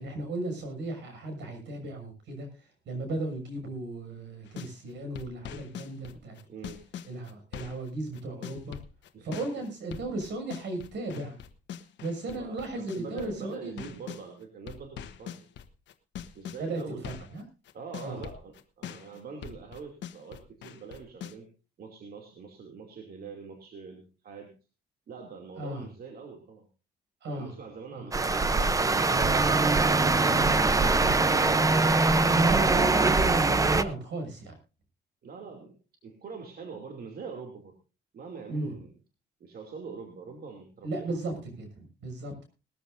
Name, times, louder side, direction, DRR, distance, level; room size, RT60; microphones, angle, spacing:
voice 1, 0.0-2.5 2.9-6.4 7.1-8.8 9.2-11.4 12.0-13.9 16.6-17.4 18.0-18.2 25.6-25.8 27.2-27.5 27.9-28.0 30.2-30.5 32.3-34.5 38.5-38.7 40.8-41.3 41.6-42.4, right 2 dB, 75° right, 6 dB, 6.4 m, -35 dB
sound 1, 4.4-4.7 5.1-14.2 14.7-17.4 17.7-21.3, left 9 dB, 80° left, 1.2 m, -42 dB
voice 2, 6.5-6.9 9.1-9.3 12.3-15.5 16.3-17.1 17.7-21.5 21.8-24.5 25.1-26.7 27.3-29.4 29.8-31.7 35.2-35.8 36.0-37.7 38.1-38.9 39.4-41.5, right 5 dB, 55° right, 2 dB, 2.7 m, -44 dB
sound 2, 28.1-33.8, right 3 dB, 20° right, 0.7 m, -23 dB
20.0 x 13.5 x 2.6 m, 0.32 s
cardioid pair, 135°, 18 cm